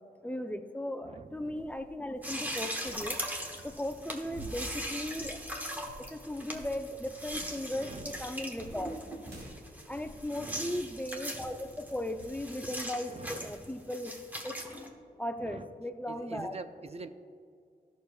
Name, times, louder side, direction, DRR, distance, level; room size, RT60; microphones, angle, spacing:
voice 1, 0.2-3.2 3.6-5.4 6.1-9.0 9.9-14.1 14.4-14.6 15.2-16.6, left 1 dB, 10° left, 8 dB, 0.6 m, -37 dB
voice 2, 1.0-1.7 4.2-4.5 7.7-8.2 10.3-10.8 13.1-13.6 15.4-15.7 16.1-17.1, right 3 dB, 35° right, 10 dB, 0.5 m, -45 dB
sound 1, 1.2-10.9 11.4-11.7 12.2-12.4, right 1 dB, 70° right, 2.0 m, -50 dB
sound 2, 2.2-14.9, equal, 10° right, 1.2 m, -40 dB
13.0 x 6.6 x 2.4 m, 2.3 s
cardioid pair, 65°, 17 cm